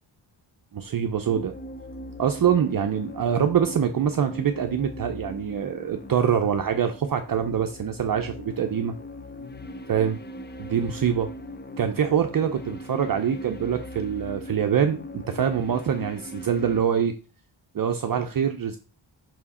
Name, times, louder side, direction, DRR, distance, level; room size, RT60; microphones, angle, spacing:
voice 1, 0.7-1.5 2.2-8.9 9.9-10.2 10.6-11.3 11.8-17.1 17.7-18.8, right 8 dB, 45° right, 5 dB, 0.6 m, -24 dB
sound 1, 1.2-16.8, left 1 dB, 20° left, 0.5 m, -40 dB
5.8 x 4.7 x 4.2 m, 0.35 s
wide cardioid pair, 140°, 49 cm